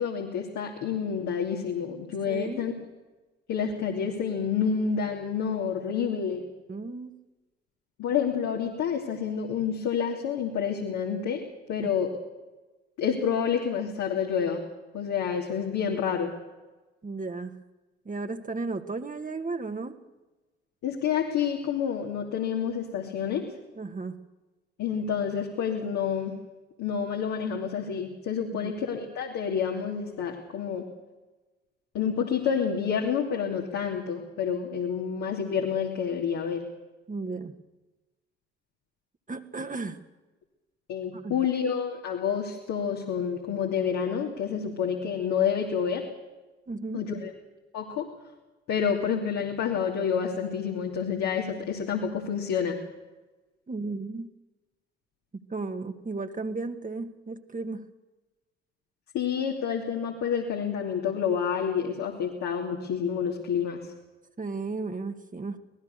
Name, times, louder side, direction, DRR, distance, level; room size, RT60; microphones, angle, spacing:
voice 1, 0.0-2.7 3.5-6.4 8.0-11.4 11.7-12.1 13.0-14.6 14.9-16.3 20.8-23.4 24.8-26.3 26.8-30.9 31.9-36.6 40.9-46.0 46.9-47.3 47.7-48.0 48.7-52.8 59.1-63.9, left 7 dB, 60° left, 0 dB, 2.9 m, -28 dB
voice 2, 2.3-2.7 6.7-7.2 11.8-11.9 17.0-17.6 18.1-20.0 23.8-24.2 28.6-28.7 37.1-37.6 39.3-40.0 41.1-41.4 46.7-47.0 53.7-54.3 55.3-57.9 64.4-65.6, right 3 dB, 25° right, 7 dB, 2.1 m, -34 dB
26.0 x 19.0 x 6.8 m, 1.2 s
figure-of-eight pair, 40°, 31 cm